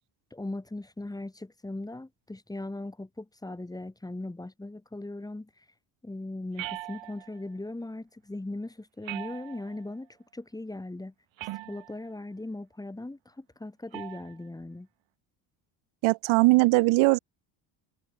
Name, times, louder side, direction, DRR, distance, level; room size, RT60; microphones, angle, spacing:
voice 1, 0.3-5.7 6.0-11.1 11.7-14.9, left 2 dB, 10° left, 3.5 m, -39 dB
sound 1, 6.6-7.4 9.0-9.9 11.4-12.1 13.9-14.3, right 17 dB, 70° right, 4.3 m, -40 dB
voice 2, 16.0-17.2, right 22 dB, 90° right, 2.1 m, -20 dB
cardioid pair, 145°, 47 cm